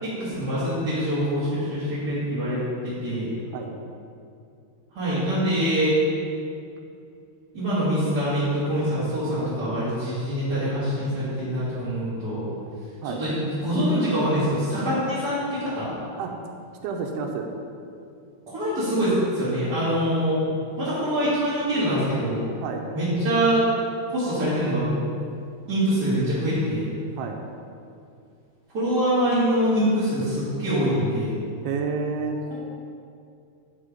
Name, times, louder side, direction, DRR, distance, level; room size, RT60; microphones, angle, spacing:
voice 1, 0.0-3.3 4.9-5.9 7.5-12.5 13.0-15.9 18.5-20.4 20.8-22.4 22.9-23.7 24.1-25.0 25.7-26.9 28.7-31.4, equal, 35° right, -14 dB, 1.8 m, -24 dB
voice 2, 16.8-17.5 22.6-22.9 27.2-27.4 31.6-32.4, right 5 dB, 90° right, 3 dB, 2.7 m, -29 dB
9.9 x 4.1 x 5.0 m, 2.5 s
omnidirectional pair, 4.6 m